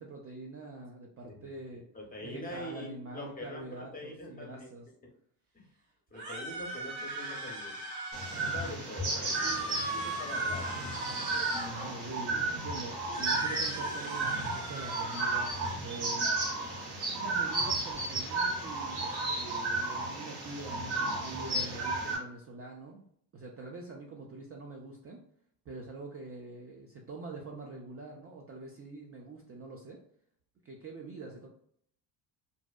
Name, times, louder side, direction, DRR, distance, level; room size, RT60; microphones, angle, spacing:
voice 1, 0.0-1.8 2.2-4.9 8.5-8.8 11.5-16.3 17.1-23.0 23.3-25.2 25.7-30.0 30.6-31.5, right 2 dB, 30° right, 0 dB, 0.4 m, -45 dB
voice 2, 1.2-4.7 5.5-5.7 6.1-7.8 8.3-10.8, left 1 dB, 15° left, 0 dB, 0.7 m, -44 dB
sound 1, 6.1-8.7 9.1-11.9 13.0-15.8, right 2 dB, 75° right, 1.0 m, -39 dB
sound 2, 8.1-22.2, right 2 dB, 55° right, 1.3 m, -33 dB
2.6 x 2.0 x 2.3 m, 0.65 s
hypercardioid pair, 65°, 50 cm